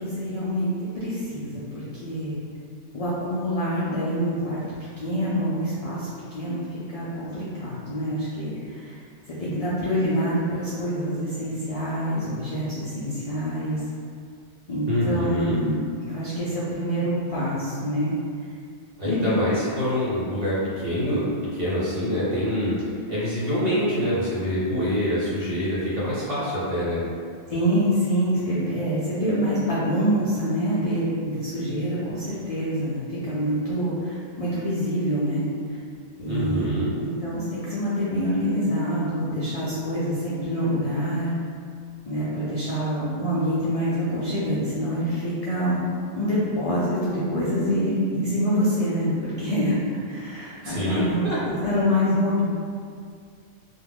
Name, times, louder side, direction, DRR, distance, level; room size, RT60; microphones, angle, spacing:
voice 1, 0.0-2.3 2.9-4.6 5.0-9.0 9.3-13.8 14.7-18.1 19.0-19.4 27.5-35.4 36.2-41.3 42.0-45.8 46.1-49.8 50.1-52.4, equal, 60° left, -9 dB, 0.3 m, -26 dB
voice 2, 14.9-15.6 19.0-22.7 23.1-27.0 36.2-36.9 50.6-51.4, equal, 55° right, -10 dB, 1.1 m, -25 dB
2.3 x 2.2 x 3.4 m, 2.3 s
omnidirectional pair, 1.2 m